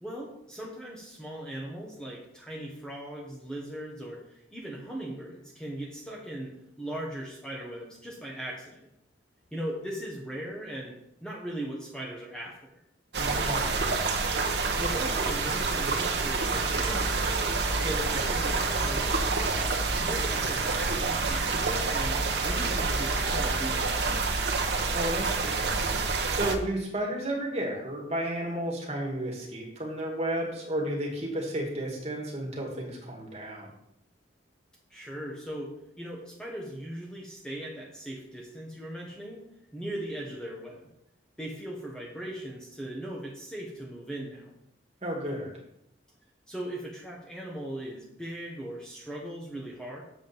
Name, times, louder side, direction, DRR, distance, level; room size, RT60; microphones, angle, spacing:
voice 1, 0.0-8.9 9.5-12.7 14.7-17.4 17.7-19.7 20.0-24.3 34.9-40.8 41.4-44.5 46.5-50.0, right 1 dB, 5° left, -3 dB, 1.4 m, -39 dB
sound 1, 13.1-26.5, right 3 dB, 60° right, 1.1 m, -28 dB
voice 2, 13.2-13.9 24.9-25.7 26.3-33.7 45.0-45.5, right 1 dB, 35° right, -1 dB, 2.2 m, -32 dB
7.6 x 5.1 x 7.1 m, 0.79 s
head